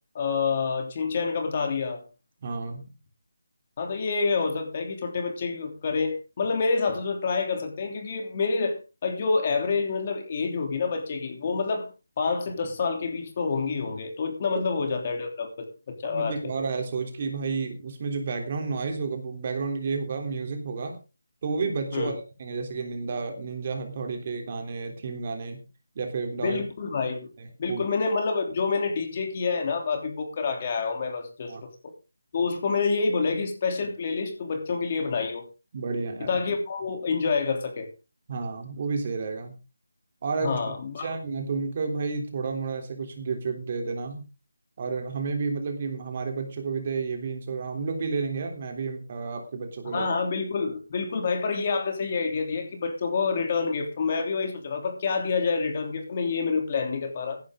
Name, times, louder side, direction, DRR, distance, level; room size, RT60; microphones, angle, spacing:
voice 1, 0.1-2.0 3.8-11.9 12.2-16.4 21.9-22.1 26.4-27.3 27.6-31.9 32.3-35.4 36.2-37.9 40.4-41.1 49.8-57.4, left 4 dB, 30° left, 4 dB, 3.1 m, -28 dB
voice 2, 2.4-2.9 14.4-14.6 16.0-21.0 21.4-22.1 22.4-25.6 25.9-26.6 27.4-27.8 31.5-31.6 35.7-36.4 38.3-39.6 40.2-44.2 44.8-50.1, right 4 dB, 35° right, 4 dB, 3.4 m, -31 dB
16.0 x 11.0 x 3.8 m, 0.31 s
figure-of-eight pair, 170°, 0 cm